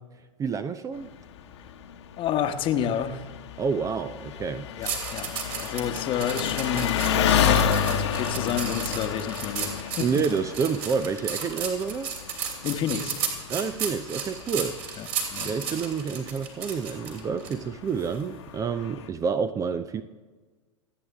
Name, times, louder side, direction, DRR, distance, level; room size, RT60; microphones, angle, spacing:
voice 1, 0.4-1.1 3.6-4.9 10.0-12.1 13.5-15.1 15.4-20.0, right 6 dB, 20° right, 12 dB, 0.6 m, -29 dB
Engine, 1.0-19.1, left 8 dB, 60° left, 1.2 m, -31 dB
voice 2, 2.2-3.2 4.8-10.2 12.6-13.2 15.0-15.5, left 8 dB, 30° left, 8 dB, 1.1 m, -30 dB
sound 1, 4.8-17.5 18.0-18.2, right 7 dB, 50° right, 3.1 m, -34 dB
27.0 x 9.4 x 3.5 m, 1.4 s
figure-of-eight pair, 90°, 16 cm